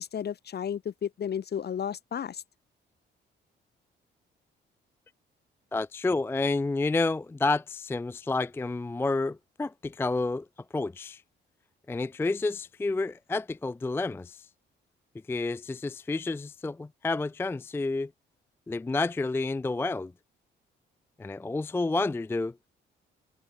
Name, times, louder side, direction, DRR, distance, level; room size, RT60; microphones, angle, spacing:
voice 1, 0.0-2.4, left 8 dB, 55° left, 2.5 m, -33 dB
voice 2, 5.7-10.5 10.7-11.2 11.9-14.5 15.3-18.1 18.7-20.1 21.2-22.5, left 3 dB, 10° left, 0.4 m, -29 dB
cardioid pair, 90°, 20 cm